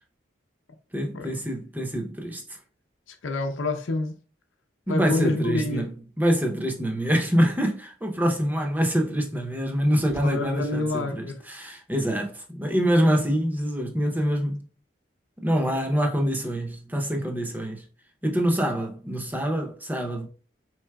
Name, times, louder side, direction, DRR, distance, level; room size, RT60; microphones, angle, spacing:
voice 1, 0.9-2.6 4.9-5.9 6.2-14.6 15.4-17.8 18.2-20.3, equal, 10° right, 0.6 m, -25 dB
voice 2, 3.1-4.2 4.9-5.9 10.2-11.4, left 2 dB, 85° left, 0.6 m, -28 dB
4.7 x 3.8 x 2.3 m
head